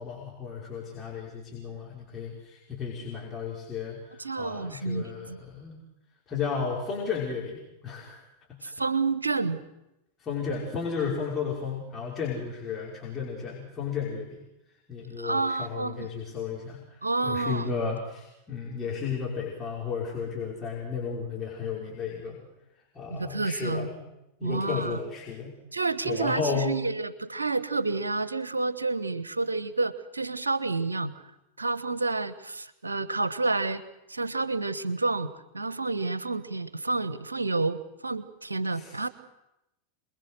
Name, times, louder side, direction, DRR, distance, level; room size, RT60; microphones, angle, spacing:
voice 1, 0.0-5.8 6.3-8.2 8.5-8.7 10.2-14.4 14.9-22.5 22.9-24.1 24.4-25.5 26.0-26.7 38.7-39.0, left 5 dB, 25° left, -4 dB, 5.5 m, -33 dB
voice 2, 4.2-5.4 8.6-9.6 15.2-16.1 17.0-17.7 23.1-23.9 24.4-25.0 25.7-31.1 31.6-33.8 34.1-39.1, right 3 dB, 80° right, 14 dB, 1.2 m, -29 dB
27.5 x 21.5 x 6.5 m, 0.89 s
figure-of-eight pair, 90°, 0 cm